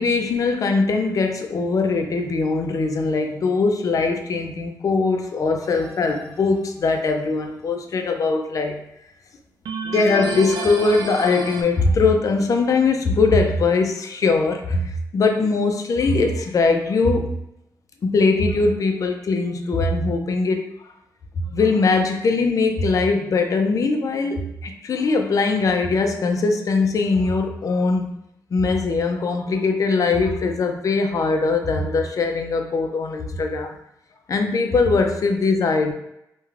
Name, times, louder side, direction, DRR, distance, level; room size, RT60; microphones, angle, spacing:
voice 1, 0.0-8.8 9.8-17.3 18.0-20.7 21.4-28.1 28.5-33.8 34.3-35.9, left 3 dB, 55° left, 5 dB, 0.4 m, -21 dB
sound 1, 5.6-6.3 9.7-11.6, right 2 dB, 90° right, 0.4 m, -30 dB
2.3 x 2.2 x 3.1 m, 0.80 s
cardioid pair, 90°, 7 cm